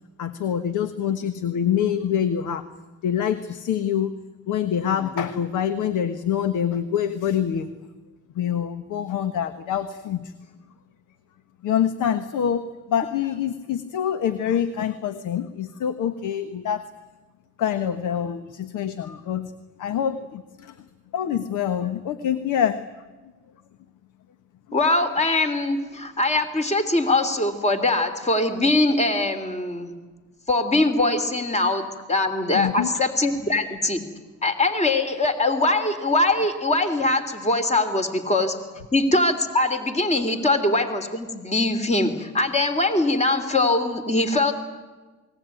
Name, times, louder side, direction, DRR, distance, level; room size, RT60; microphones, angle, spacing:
voice 1, 0.2-2.6 3.0-4.1 4.5-7.7 8.3-10.3 11.6-16.9 17.6-19.5 19.8-20.8 21.1-22.8 24.7-24.8 32.5-32.9 40.4-40.5, left 9 dB, 85° left, 11 dB, 1.4 m, -25 dB
voice 2, 24.7-29.9 30.5-34.0 34.4-38.5 38.9-44.5, left 2 dB, 20° left, 8 dB, 3.2 m, -22 dB
28.0 x 21.0 x 9.2 m, 1.3 s
cardioid pair, 90°, 30 cm